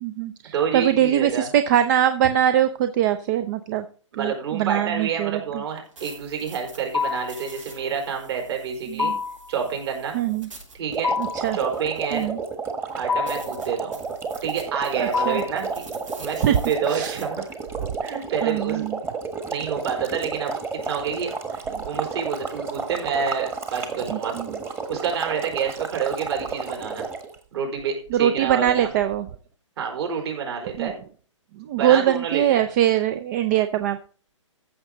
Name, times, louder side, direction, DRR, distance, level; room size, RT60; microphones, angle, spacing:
voice 1, 0.0-3.8 4.1-5.4 8.9-9.2 10.1-10.5 11.2-11.6 12.1-12.4 15.0-15.4 16.4-16.6 16.9-17.2 18.4-19.0 21.7-21.8 24.1-24.5 28.1-29.3 30.8-30.9 31.6-34.0, right 11 dB, 35° right, 11 dB, 0.6 m, -22 dB
voice 2, 0.5-1.5 4.1-9.1 9.5-10.2 10.7-11.1 11.5-12.3 12.9-14.0 14.4-15.8 16.2-17.4 18.0-18.8 19.5-21.3 21.8-24.3 24.9-27.0 27.5-28.9 29.8-31.0 31.7-32.6, right 6 dB, 55° right, 2 dB, 4.4 m, -28 dB
sound 1, 5.7-12.5 12.9-13.0 13.3-17.2, right 3 dB, 80° right, 6.2 m, -46 dB
sound 2, 6.9-7.4 9.0-9.5 11.0-11.5 13.1-13.6 15.1-15.6, left 5 dB, 80° left, 0.7 m, -26 dB
sound 3, 10.9-27.4, right 4 dB, 15° right, 1.4 m, -32 dB
14.5 x 6.5 x 3.9 m, 0.42 s
hypercardioid pair, 130°, 16 cm